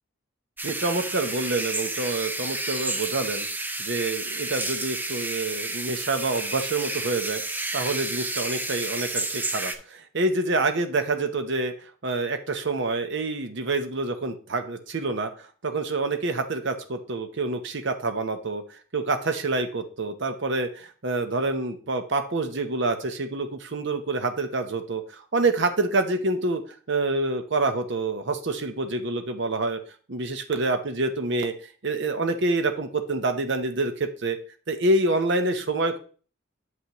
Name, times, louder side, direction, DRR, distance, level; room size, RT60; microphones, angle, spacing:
sound 1, 0.6-9.8, right 2 dB, 10° right, 0.4 m, -31 dB
voice 1, 0.6-3.5 3.8-7.4 7.7-11.7 12.0-15.3 15.6-18.6 18.9-26.6 26.9-29.8 30.1-31.5 31.8-34.4 34.7-36.0, right 2 dB, 60° right, 8 dB, 0.8 m, -27 dB
7.8 x 5.7 x 2.9 m, 0.40 s
head